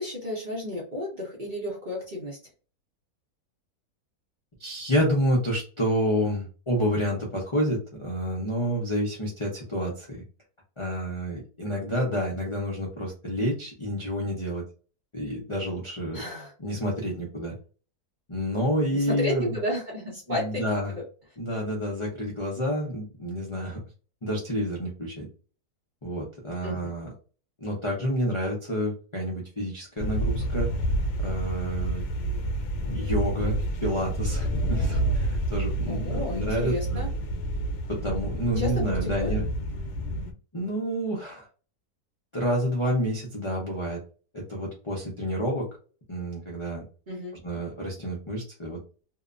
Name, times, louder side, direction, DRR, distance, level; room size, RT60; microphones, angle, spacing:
voice 1, 0.0-2.4 16.1-16.5 18.9-20.4 20.9-21.0 26.6-26.8 35.9-37.1 38.6-38.7 39.0-39.3 47.1-47.3, left 1 dB, 40° right, -3 dB, 0.7 m, -32 dB
voice 2, 4.6-10.2 10.8-14.6 15.1-16.2 16.6-17.5 18.3-19.6 20.3-20.9 21.4-23.8 24.2-25.3 26.0-27.1 27.6-30.7 31.2-32.0 32.8-37.0 37.9-39.4 40.5-41.4 42.3-44.0 44.3-45.7 46.1-46.8 47.4-48.8, equal, 50° left, -4 dB, 0.3 m, -29 dB
sound 1, 30.0-40.3, right 1 dB, 85° left, 1.2 m, -29 dB
2.8 x 2.2 x 2.4 m, 0.37 s
omnidirectional pair, 1.7 m